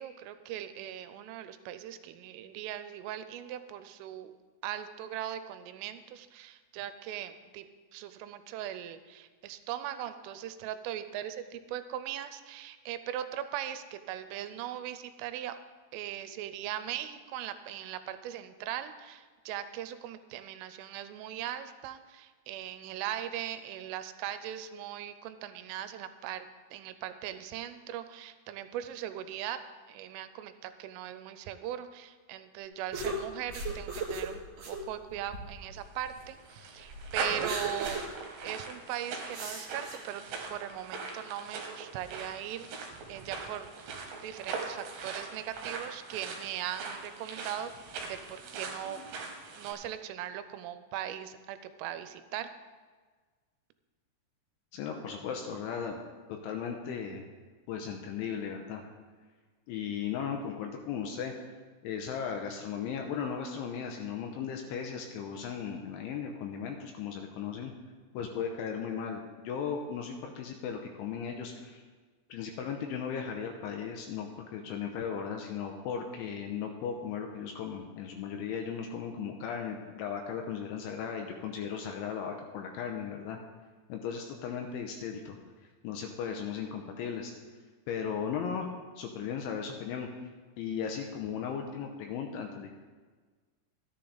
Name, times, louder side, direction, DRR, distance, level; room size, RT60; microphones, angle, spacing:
voice 1, 0.0-4.3 4.6-7.6 7.9-15.6 15.9-29.6 29.9-38.0 38.4-40.2 40.5-44.0 44.2-47.7 48.0-49.0 49.6-52.5, right 11 dB, 85° right, 11 dB, 3.0 m, -39 dB
sound 1, 32.9-36.3 36.7-38.1 38.4-38.5 39.3-40.0, right 3 dB, 50° right, 3.2 m, -37 dB
sound 2, 35.9-49.7, right 4 dB, 65° right, 2.7 m, -41 dB
voice 2, 54.7-56.0 56.3-57.3 57.7-58.8 59.7-61.3 61.8-67.7 68.1-71.8 72.3-83.4 83.9-85.4 85.8-87.3 87.9-88.7 89.0-90.1 90.6-92.7, left 7 dB, 80° left, 3 dB, 2.9 m, -36 dB
14.0 x 10.0 x 3.9 m, 1.4 s
omnidirectional pair, 6.0 m